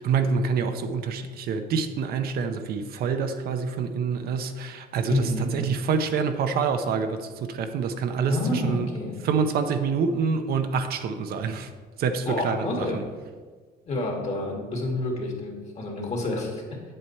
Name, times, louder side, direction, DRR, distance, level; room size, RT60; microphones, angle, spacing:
voice 1, 0.0-8.9 9.2-11.7 12.0-12.7 12.9-13.0, right 5 dB, 65° right, 7 dB, 0.7 m, -26 dB
voice 2, 5.1-5.5 8.3-9.2 12.3-13.0 13.9-16.6, left 2 dB, 40° left, 0 dB, 2.4 m, -28 dB
7.9 x 7.8 x 4.3 m, 1.5 s
cardioid pair, 110°, 17 cm